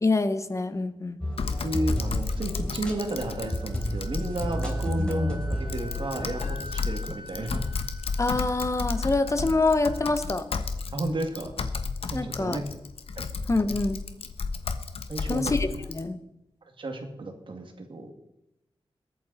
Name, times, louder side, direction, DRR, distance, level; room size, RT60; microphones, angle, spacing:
voice 1, 0.0-1.2 5.0-5.1 8.2-10.4 12.1-12.6 13.5-14.0 15.3-16.2, left 3 dB, 30° left, 10 dB, 1.0 m, -26 dB
sound 1, 1.2-6.6, left 1 dB, 10° left, 3.6 m, -31 dB
Typing, 1.4-16.0, left 4 dB, 80° left, 1.2 m, -33 dB
voice 2, 1.6-7.7 10.9-11.5 12.1-12.8 13.2-13.3 15.1-15.5 16.8-18.1, right 2 dB, 60° right, 4 dB, 2.4 m, -32 dB
Wind instrument woodwind instrument, 2.7-10.5, equal, 80° right, 1.7 m, -47 dB
21.5 x 9.2 x 4.3 m, 0.88 s
wide cardioid pair, 95°, 10 cm